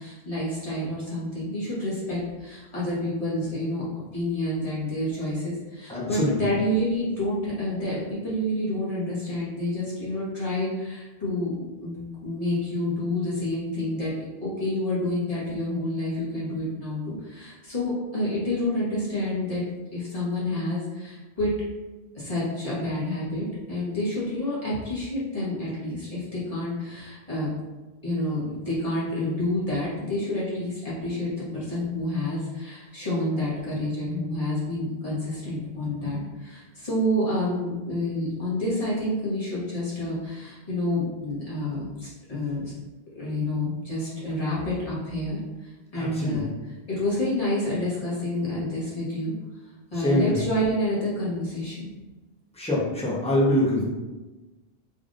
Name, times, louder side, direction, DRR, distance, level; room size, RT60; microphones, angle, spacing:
voice 1, 0.0-3.8 4.1-14.1 14.4-19.6 19.9-21.5 22.1-27.5 28.0-42.7 43.1-46.5 46.9-49.3 49.9-51.9, left 1 dB, 35° left, -9 dB, 1.5 m, -28 dB
voice 2, 5.9-6.4 46.0-46.4 50.0-50.3 52.6-53.8, left 1 dB, 5° left, -6 dB, 0.9 m, -24 dB
3.9 x 3.4 x 2.5 m, 1.1 s
omnidirectional pair, 1.0 m